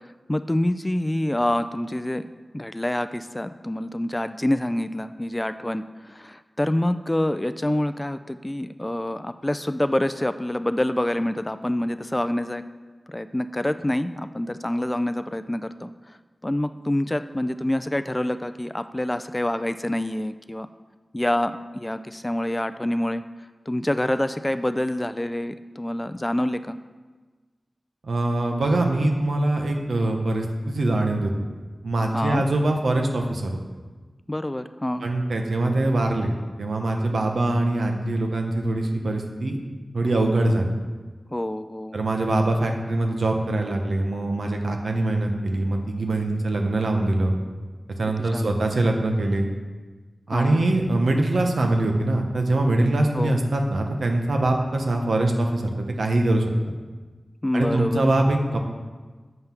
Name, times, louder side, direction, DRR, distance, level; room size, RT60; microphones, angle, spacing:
voice 1, 0.3-2.3 2.5-12.6 13.1-15.9 16.4-20.7 21.1-23.2 23.7-26.8 32.1-32.4 34.3-35.0 41.3-42.0 48.2-48.6 50.3-50.7 53.1-53.4 57.4-58.1, left 1 dB, 15° left, 11 dB, 0.3 m, -26 dB
voice 2, 28.0-31.5 31.8-33.6 35.0-36.3 36.6-39.6 39.9-40.7 41.9-47.3 48.0-49.5 50.3-56.7 57.5-58.6, right 2 dB, 90° right, 3 dB, 1.0 m, -23 dB
7.9 x 5.6 x 5.9 m, 1.4 s
wide cardioid pair, 85°, 0 cm